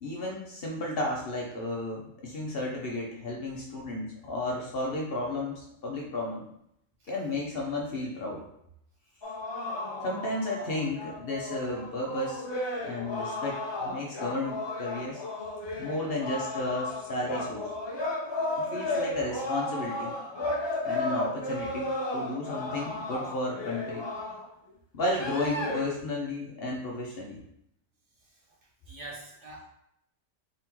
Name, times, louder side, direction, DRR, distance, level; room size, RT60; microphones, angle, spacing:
voice 1, 0.0-6.4 7.1-8.4 10.0-12.4 12.8-15.2 15.8-17.7 18.6-20.1 20.8-24.1 24.9-27.4, left 2 dB, 55° left, -2 dB, 0.8 m, -33 dB
sound 1, 9.2-24.5 25.0-25.8, left 2 dB, 40° left, 0.4 m, -34 dB
voice 2, 28.9-29.7, right 2 dB, 65° right, -4 dB, 1.4 m, -44 dB
3.6 x 3.6 x 2.9 m, 0.75 s
omnidirectional pair, 1.4 m